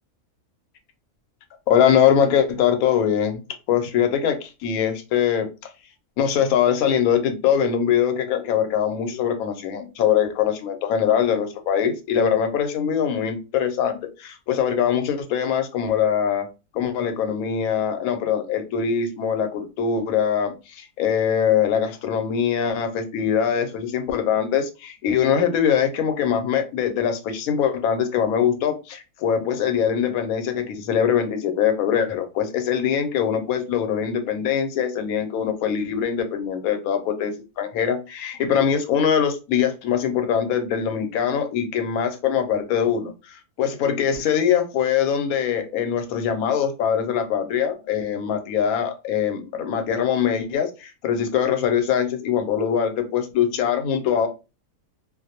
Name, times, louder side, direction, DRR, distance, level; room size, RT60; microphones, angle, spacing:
voice 1, 1.7-3.4 3.7-5.5 6.2-16.5 16.7-54.3, left 8 dB, 80° left, 6 dB, 1.0 m, -22 dB
2.4 x 2.0 x 2.7 m, 0.29 s
omnidirectional pair, 1.5 m